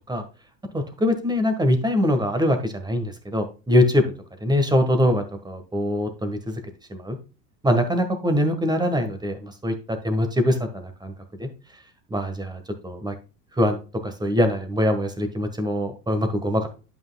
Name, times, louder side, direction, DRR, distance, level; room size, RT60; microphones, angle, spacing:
voice 1, 0.7-4.0 4.4-6.5 6.9-7.2 7.6-11.1 11.4-11.5 12.1-13.1 13.6-13.8 14.0-16.7, left 1 dB, 10° right, 7 dB, 1.5 m, -23 dB
11.0 x 5.9 x 2.3 m, 0.33 s
hypercardioid pair, 85°, 49 cm